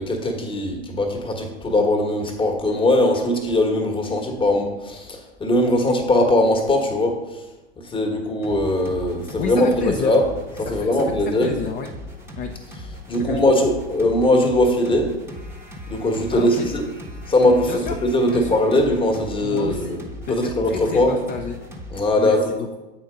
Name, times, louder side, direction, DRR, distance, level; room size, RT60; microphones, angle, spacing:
voice 1, 0.0-7.2 7.9-10.2 10.6-11.5 13.1-15.1 15.9-16.8 17.3-20.0 20.3-21.2 21.9-22.5, left 1 dB, 15° left, 3 dB, 1.3 m, -20 dB
sound 1, 8.4-22.1, left 1 dB, 5° right, 1.0 m, -38 dB
voice 2, 9.4-10.1 10.7-11.9 12.4-12.5 13.2-13.4 16.3-16.7 17.7-17.9 18.3-18.6 19.4-20.0 20.3-21.6 22.2-22.8, left 5 dB, 30° left, 2 dB, 0.7 m, -30 dB
8.0 x 4.4 x 5.0 m, 1.1 s
hypercardioid pair, 105°, 34 cm